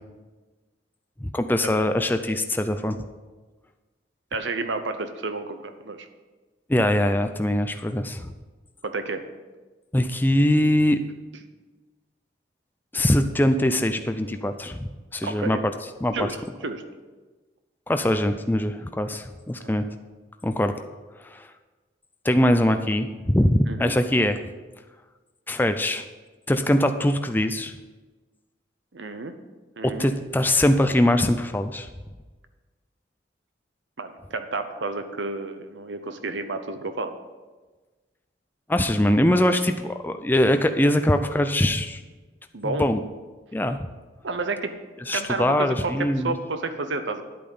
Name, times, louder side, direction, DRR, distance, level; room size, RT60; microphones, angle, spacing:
voice 1, 1.2-3.0 6.7-8.3 9.9-11.0 12.9-15.7 16.0-16.3 17.9-19.9 20.4-20.7 21.2-21.5 22.2-24.4 25.5-26.0 26.5-27.8 29.8-31.9 38.7-42.0 42.6-43.0 43.5-43.8 45.1-46.3, left 1 dB, 10° left, 8 dB, 0.4 m, -22 dB
voice 2, 4.3-6.1 8.8-9.2 15.2-15.6 16.1-16.4 16.6-16.8 19.6-19.7 23.7-23.9 28.9-29.3 29.8-30.1 34.0-37.1 42.5-42.8 44.2-44.7 45.1-45.9 46.2-47.2, right 3 dB, 80° right, 8 dB, 0.9 m, -30 dB
10.5 x 8.6 x 5.5 m, 1.3 s
head